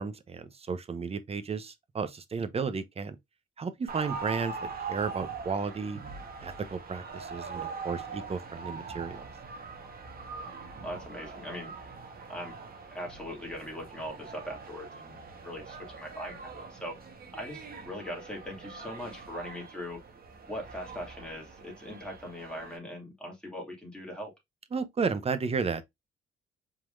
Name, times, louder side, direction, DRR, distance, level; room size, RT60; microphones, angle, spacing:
voice 1, 0.0-3.2 3.6-6.0 6.4-9.2 24.7-25.8, right 5 dB, 30° right, 0.7 m, -33 dB
sound 1, 3.9-22.8, right 4 dB, 50° right, 1.2 m, -42 dB
voice 2, 10.4-12.5 12.9-17.0 17.3-20.0 20.4-24.3, equal, 5° left, 2.4 m, -41 dB
4.6 x 3.8 x 2.6 m
cardioid pair, 90°, 20 cm